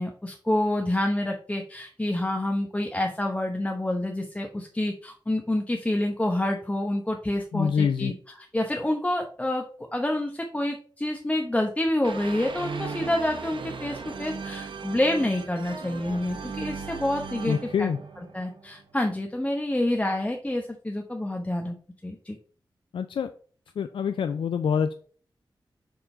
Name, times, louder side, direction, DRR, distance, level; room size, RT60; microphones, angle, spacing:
voice 1, 0.0-8.1 8.5-17.9 18.3-21.8 22.0-22.4, left 1 dB, 15° left, 3 dB, 0.9 m, -28 dB
voice 2, 7.5-8.1 17.5-18.0 22.9-23.3 23.8-24.9, left 7 dB, 85° left, 10 dB, 0.4 m, -26 dB
sound 1, 12.0-19.0, right 5 dB, 75° right, 0.9 m, -37 dB
7.0 x 3.7 x 4.3 m, 0.44 s
cardioid pair, 65°, 8 cm